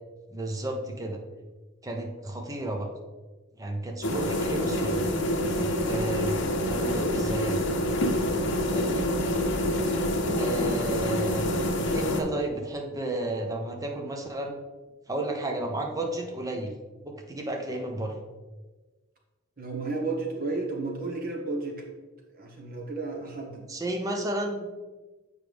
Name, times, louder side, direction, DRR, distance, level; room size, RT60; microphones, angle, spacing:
voice 1, 0.3-1.2 1.8-2.9 3.6-5.0 5.6-6.4 6.7-7.6 8.7-9.1 10.3-11.5 11.9-14.6 15.1-16.7 17.0-18.1 23.7-24.8, right 1 dB, 15° right, 2 dB, 0.8 m, -32 dB
sound 1, 4.0-12.2, left 1 dB, 60° left, 0.8 m, -27 dB
voice 2, 19.6-21.8 22.3-23.7, right 3 dB, 45° right, 0 dB, 1.4 m, -32 dB
8.1 x 4.8 x 3.4 m, 1.2 s
head